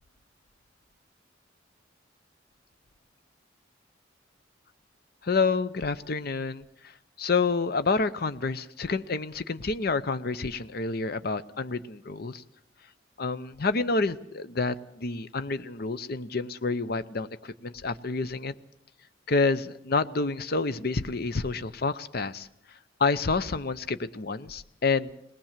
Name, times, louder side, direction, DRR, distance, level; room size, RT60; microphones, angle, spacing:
voice 1, 5.2-6.6 7.2-12.4 13.2-18.5 19.3-22.5 23.0-25.1, left 4 dB, 55° left, 13 dB, 0.7 m, -28 dB
21.0 x 19.0 x 7.4 m, 0.77 s
head